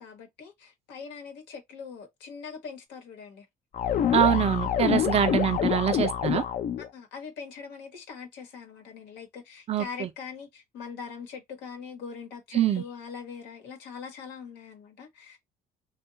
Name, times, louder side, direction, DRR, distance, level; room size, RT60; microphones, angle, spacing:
voice 1, 0.0-3.5 6.8-15.4, left 6 dB, 85° left, 1.1 m, -42 dB
sound 1, 3.7-6.9, left 9 dB, 50° left, 0.5 m, -26 dB
voice 2, 4.1-6.4 9.7-10.1 12.5-12.8, right 10 dB, 40° right, 0.5 m, -24 dB
2.8 x 2.3 x 2.6 m
cardioid pair, 110°, 17 cm